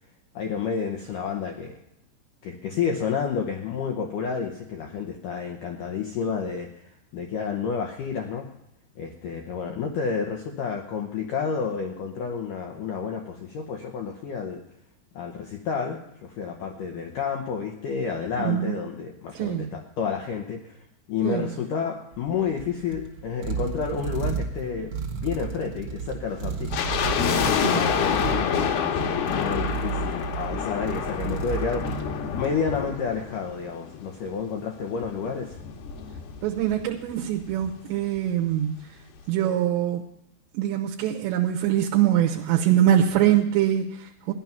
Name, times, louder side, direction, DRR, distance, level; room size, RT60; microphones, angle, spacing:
voice 1, 0.3-1.8 2.4-8.5 9.0-14.6 15.2-20.8 21.1-32.0 32.3-35.6, left 6 dB, 85° left, 2 dB, 1.8 m, -30 dB
voice 2, 18.4-18.8 19.4-19.7 21.2-21.5 27.6-28.0 36.4-38.8 39.3-40.1 40.5-44.3, right 11 dB, 80° right, 1 dB, 3.0 m, -23 dB
sound 1, 22.1-32.7, right 5 dB, 60° right, 1.7 m, -33 dB
sound 2, 26.7-34.0 34.2-34.3 35.0-36.8 37.1-37.2 37.4-37.7 38.2-38.3, left 7 dB, 70° left, 2.7 m, -27 dB
15.5 x 11.0 x 5.8 m, 0.86 s
omnidirectional pair, 5.3 m